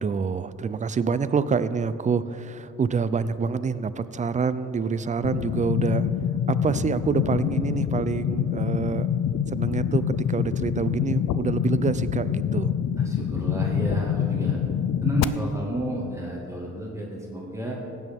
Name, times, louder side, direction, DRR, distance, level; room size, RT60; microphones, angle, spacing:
voice 1, 0.0-6.1 6.5-9.1 9.5-12.7, right 5 dB, 25° right, 14 dB, 0.4 m, -26 dB
sound 1, 5.2-15.2, left 9 dB, 60° left, 0.5 m, -26 dB
voice 2, 13.0-14.6 15.0-17.8, right 1 dB, 10° right, -3 dB, 1.9 m, -31 dB
15.5 x 9.2 x 3.6 m, 2.8 s
cardioid pair, 90°, 30 cm